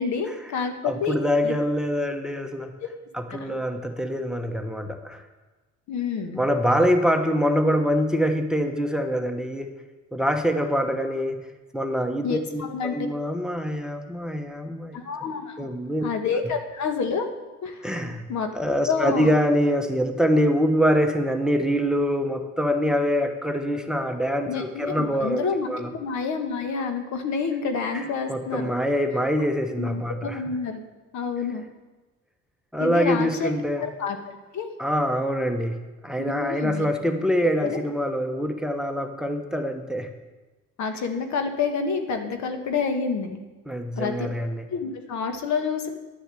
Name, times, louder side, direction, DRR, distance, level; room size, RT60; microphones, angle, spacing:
voice 1, 0.0-1.2 1.4-1.5 2.8-2.9 3.3-3.6 5.9-6.4 12.2-12.9 14.9-15.7 16.0-17.3 17.6-17.9 18.3-18.5 18.9-19.3 24.5-28.7 29.8-30.8 31.1-31.7 32.8-33.5 33.8-34.7 36.3-36.8 37.4-37.8 40.8-43.4 44.0-44.3 44.7-45.9, left 5 dB, 60° left, 6 dB, 1.4 m, -28 dB
voice 2, 0.8-2.7 3.1-5.2 6.3-9.7 10.1-11.4 11.7-15.0 15.6-16.1 17.8-18.3 18.5-25.9 27.9-30.4 32.7-33.9 34.8-40.1 43.7-44.7, equal, ahead, 7 dB, 1.0 m, -24 dB
11.0 x 6.7 x 7.6 m, 1.2 s
supercardioid pair, 80°, 31 cm